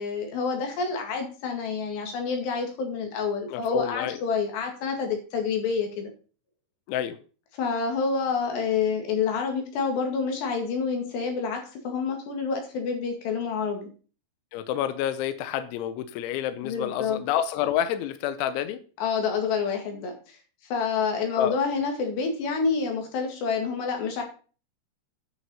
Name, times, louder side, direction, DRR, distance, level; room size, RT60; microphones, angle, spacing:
voice 1, 0.0-6.1 7.5-13.9 16.6-17.2 19.0-20.4 20.7-24.2, left 5 dB, 65° left, 3.9 m, -28 dB
voice 2, 3.5-4.2 6.9-7.2 14.5-18.8 21.4-21.6, left 10 dB, 80° left, 2.9 m, -28 dB
9.6 x 6.3 x 7.0 m
omnidirectional pair, 5.8 m